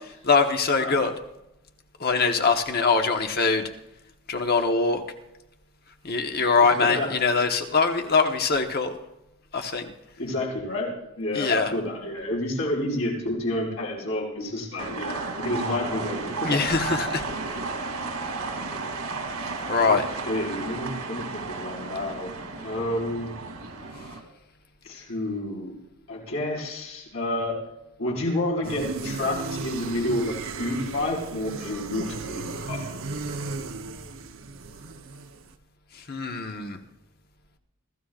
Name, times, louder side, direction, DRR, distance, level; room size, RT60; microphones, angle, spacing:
voice 1, 0.2-1.1 2.0-3.6 4.3-5.0 6.0-9.0 9.5-9.9 11.3-11.7 16.4-17.2 19.7-20.0 35.9-36.8, left 4 dB, 45° left, 5 dB, 1.2 m, -23 dB
voice 2, 6.6-7.1 10.2-10.9 11.2-16.6 19.8-20.0 20.2-23.3 24.8-25.7 26.1-27.6 28.0-32.8, left 1 dB, 70° left, -3 dB, 5.6 m, -29 dB
sound 1, 14.8-24.2, right 3 dB, 90° right, 3.1 m, -33 dB
sound 2, 28.6-35.5, right 3 dB, 65° right, 0.9 m, -35 dB
29.0 x 14.5 x 2.5 m, 0.90 s
head